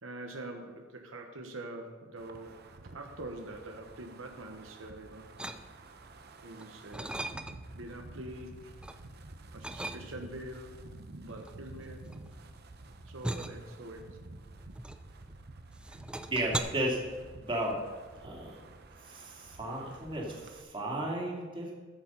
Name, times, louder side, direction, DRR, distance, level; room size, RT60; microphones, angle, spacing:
voice 1, 0.0-2.7 2.9-5.3 6.4-7.2 7.7-8.7 9.5-12.1 13.0-14.2, right 1 dB, 90° right, 3 dB, 1.2 m, -44 dB
Wind, 2.2-20.6, right 2 dB, 55° right, 0.8 m, -50 dB
sound 1, 5.4-6.1 6.5-7.8 8.2-9.0 9.6-10.4 11.3-15.4 15.7-16.6, right 1 dB, 5° right, 0.4 m, -39 dB
voice 2, 16.3-17.0 17.3-17.8 18.2-18.6 19.0-21.7, right 1 dB, 25° right, -3 dB, 2.3 m, -34 dB
12.5 x 7.1 x 5.5 m, 1.4 s
head